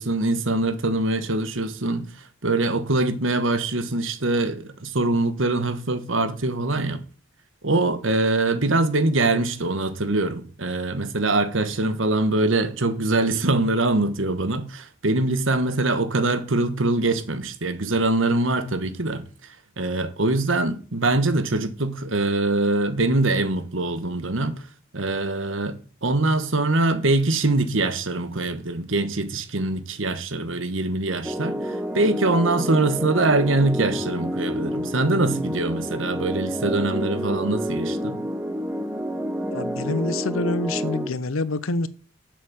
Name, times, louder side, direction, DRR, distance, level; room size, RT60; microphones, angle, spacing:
voice 1, 0.0-2.1 2.4-7.0 7.6-19.2 19.8-24.6 24.9-38.2, right 2 dB, 70° right, 1.4 m, -23 dB
sound 1, 31.2-41.1, equal, 10° right, 0.9 m, -29 dB
voice 2, 39.5-41.9, left 2 dB, 85° left, 0.8 m, -26 dB
7.5 x 6.6 x 7.4 m
head